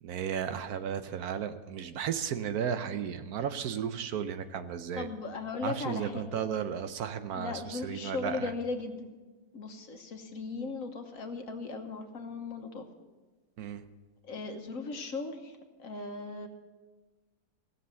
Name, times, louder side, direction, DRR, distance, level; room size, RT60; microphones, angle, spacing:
voice 1, 0.0-5.1 5.6-8.5 13.6-13.8, right 8 dB, 70° right, 10 dB, 1.1 m, -34 dB
voice 2, 4.9-6.4 7.3-9.2 9.5-12.9 14.3-16.5, left 3 dB, 60° left, 5 dB, 1.4 m, -37 dB
17.0 x 6.9 x 6.9 m, 1.3 s
omnidirectional pair, 1.7 m